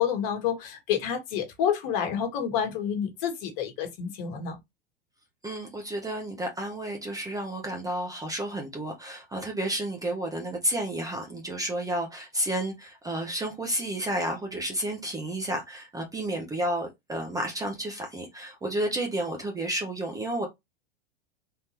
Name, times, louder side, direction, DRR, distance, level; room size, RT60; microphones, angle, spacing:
voice 1, 0.0-4.6, left 8 dB, 50° left, 1.4 m, -28 dB
voice 2, 5.4-20.5, right 1 dB, 10° right, 0.8 m, -31 dB
3.7 x 2.6 x 2.9 m
hypercardioid pair, 100°, 30 cm